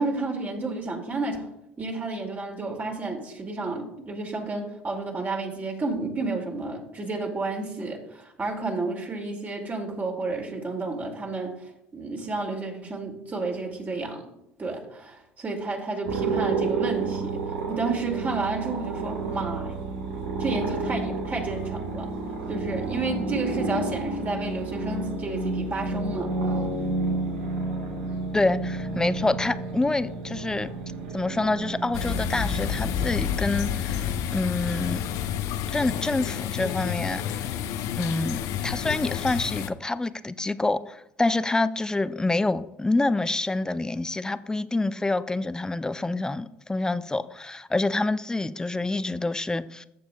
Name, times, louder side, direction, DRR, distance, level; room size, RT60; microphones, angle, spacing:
voice 1, 0.0-1.4 1.8-14.2 14.6-19.8 20.4-22.1 22.5-26.3, right 3 dB, 30° right, 1 dB, 2.3 m, -31 dB
Helicopter in Hawaii, 16.0-34.2, right 3 dB, 80° right, 1.5 m, -31 dB
voice 2, 28.3-30.7 31.1-35.0 35.7-37.5 38.0-49.9, left 2 dB, 10° left, 14 dB, 0.5 m, -27 dB
sound 1, 31.9-39.7, left 9 dB, 60° left, 0.6 m, -29 dB
14.0 x 6.9 x 2.3 m, 0.83 s
hypercardioid pair, 70°, 6 cm